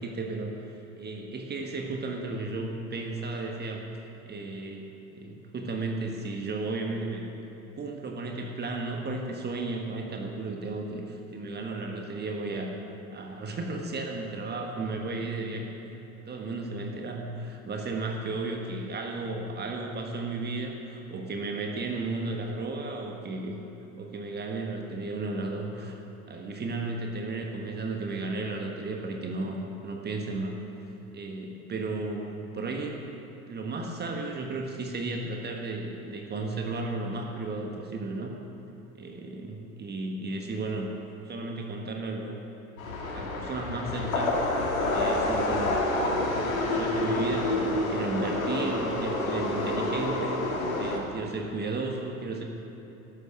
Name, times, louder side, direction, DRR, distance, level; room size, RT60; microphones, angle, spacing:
voice 1, 0.0-3.8 4.3-7.3 7.8-15.7 16.2-23.6 24.0-26.0 26.3-30.6 31.1-33.1 33.5-38.3 38.9-40.9 41.2-42.4 43.1-44.4 44.9-52.4, right 3 dB, 25° right, 2 dB, 1.5 m, -34 dB
sound 1, 42.8-51.0, left 2 dB, 75° left, 2.0 m, -28 dB
13.5 x 12.0 x 6.6 m, 3.0 s
figure-of-eight pair, 75°, 42 cm